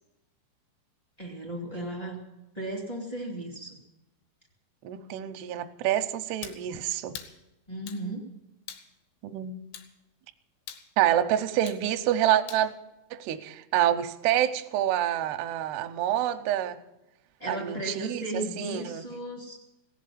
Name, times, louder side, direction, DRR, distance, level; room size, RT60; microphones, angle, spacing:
voice 1, 1.2-2.2 2.5-3.8 7.7-8.2 17.4-19.6, right 1 dB, 45° left, -1 dB, 0.5 m, -35 dB
voice 2, 4.8-7.2 9.2-9.5 11.0-12.7 13.1-16.8 17.5-19.0, right 11 dB, 80° right, 7 dB, 2.4 m, -27 dB
sound 1, 6.4-6.6 7.1-7.4 7.9-8.0 8.7-8.9 9.7-9.9 10.7-10.9 11.7-11.8 12.5-12.7, left 9 dB, 80° left, 3.8 m, -42 dB
17.5 x 7.6 x 10.0 m, 0.94 s
omnidirectional pair, 5.6 m